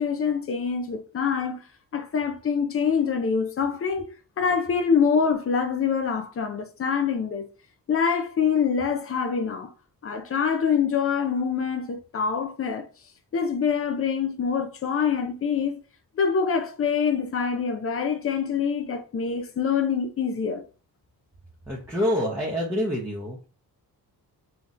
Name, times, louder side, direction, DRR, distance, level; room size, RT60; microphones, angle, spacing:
voice 1, 0.0-1.6 1.9-4.1 4.4-7.5 7.9-9.7 10.0-12.9 13.3-15.8 16.2-20.6, left 6 dB, 35° left, 0.6 m, -25 dB
voice 2, 21.7-23.4, equal, 5° right, 1.0 m, -26 dB
5.7 x 2.9 x 2.5 m
wide cardioid pair, 160°, 38 cm